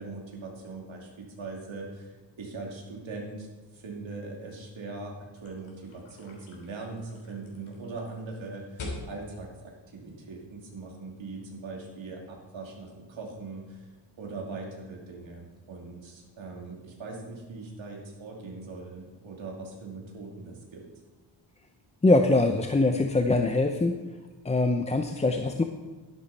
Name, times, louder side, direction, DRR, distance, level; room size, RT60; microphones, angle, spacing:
voice 1, 0.0-2.1 2.4-3.5 3.7-13.9 14.2-20.8, right 3 dB, 75° right, -1 dB, 2.7 m, -41 dB
sound 1, 5.4-10.7, left 2 dB, 80° left, 3.3 m, -45 dB
voice 2, 22.0-24.0 24.4-25.6, left 2 dB, 15° left, 5 dB, 0.5 m, -23 dB
12.5 x 11.0 x 4.2 m, 1.3 s
wide cardioid pair, 125°, 47 cm